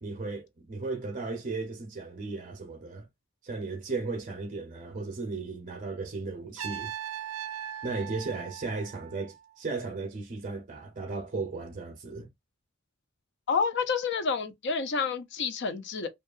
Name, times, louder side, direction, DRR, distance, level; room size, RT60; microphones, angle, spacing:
voice 1, 0.0-3.1 3.4-6.9 7.8-12.3, right 3 dB, 40° right, 0.6 m, -35 dB
Trumpet, 6.6-9.6, right 10 dB, 90° right, 0.4 m, -39 dB
voice 2, 13.5-16.1, left 5 dB, 55° left, 0.5 m, -29 dB
2.7 x 2.3 x 2.3 m
head